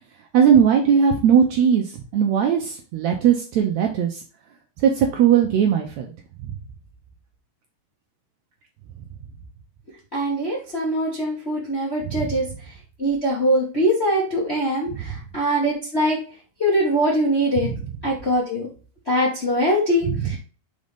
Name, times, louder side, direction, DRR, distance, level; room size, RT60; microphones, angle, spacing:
voice 1, 0.3-4.2 4.8-6.1 12.0-12.3 14.9-15.0 17.6-17.8 20.1-20.4, right 8 dB, 75° right, 3 dB, 1.7 m, -19 dB
voice 2, 10.1-12.4 13.0-16.2 16.6-17.7 18.0-18.7 19.1-20.4, equal, 35° left, -4 dB, 1.0 m, -22 dB
5.3 x 4.1 x 5.0 m, 0.37 s
omnidirectional pair, 3.8 m